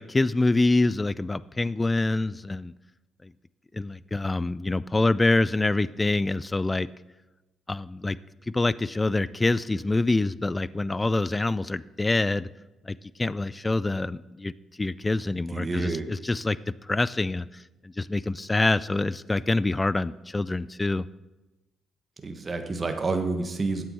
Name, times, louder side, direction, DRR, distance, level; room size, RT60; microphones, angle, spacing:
voice 1, 0.0-2.7 3.2-3.3 3.7-6.9 7.7-8.2 8.5-12.5 12.9-14.5 14.8-16.6 16.9-17.5 18.0-21.1, left 2 dB, 20° left, 19 dB, 0.3 m, -25 dB
voice 2, 15.3-16.1 22.2-23.8, right 3 dB, 30° right, 6 dB, 1.3 m, -29 dB
9.1 x 7.7 x 5.7 m, 1.0 s
cardioid pair, 90°, 0 cm